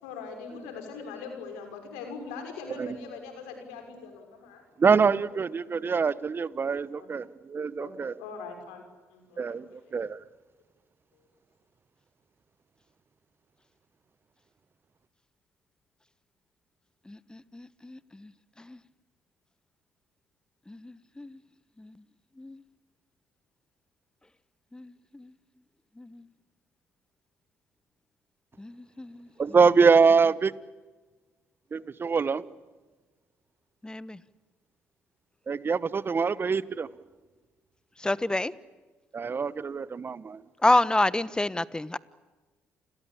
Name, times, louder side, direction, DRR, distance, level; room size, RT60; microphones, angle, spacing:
voice 1, 0.0-4.6 5.6-6.1 6.9-7.1 7.8-7.9 8.2-8.8 9.1-9.5 9.8-9.9, left 5 dB, 85° left, 5 dB, 5.9 m, -41 dB
voice 2, 4.8-8.1 9.4-10.2 29.4-30.5 31.7-32.5 35.5-36.9 39.1-40.4, right 5 dB, 40° right, 18 dB, 1.2 m, -24 dB
voice 3, 38.0-38.5 40.6-42.0, left 2 dB, 15° left, 18 dB, 1.2 m, -24 dB
30.0 x 21.5 x 8.7 m, 1.3 s
hypercardioid pair, 55°, 6 cm